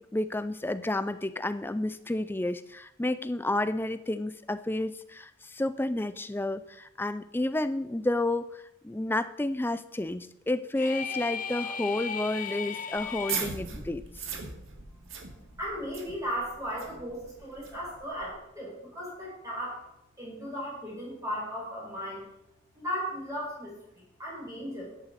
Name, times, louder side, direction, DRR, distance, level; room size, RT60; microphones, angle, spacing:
voice 1, 0.0-14.0, left 1 dB, 10° left, 13 dB, 0.4 m, -31 dB
sound 1, 10.8-13.5, left 7 dB, 40° left, 0.7 m, -35 dB
sound 2, 12.9-18.3, right 5 dB, 75° right, 1.9 m, -39 dB
voice 2, 15.3-19.8 20.2-22.2 22.7-24.9, equal, 15° right, -6 dB, 5.4 m, -36 dB
13.0 x 9.9 x 4.1 m, 0.80 s
head